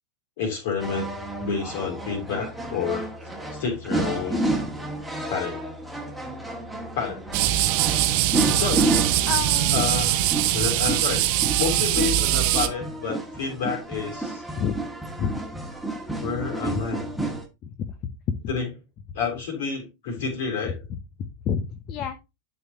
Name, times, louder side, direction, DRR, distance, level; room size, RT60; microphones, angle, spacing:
voice 1, 0.4-1.1 1.4-3.1 3.5-4.4 5.3-5.6 6.9-7.2 8.6-8.9 9.7-10.2 10.5-11.2 11.6-14.4 16.2-17.1 18.5-18.7 19.1-20.8, left 6 dB, 55° left, 3.3 m, -29 dB
sound 1, 0.8-17.4, right 2 dB, ahead, 1.7 m, -31 dB
sound 2, 7.3-12.7, right 14 dB, 45° right, 0.8 m, -22 dB
voice 2, 9.2-9.8 14.6-14.8 15.2-15.4 16.2-16.4 16.6-16.8 17.6-17.9 21.4-22.2, left 7 dB, 35° left, 0.7 m, -29 dB
11.0 x 4.8 x 2.8 m
figure-of-eight pair, 90°, 0 cm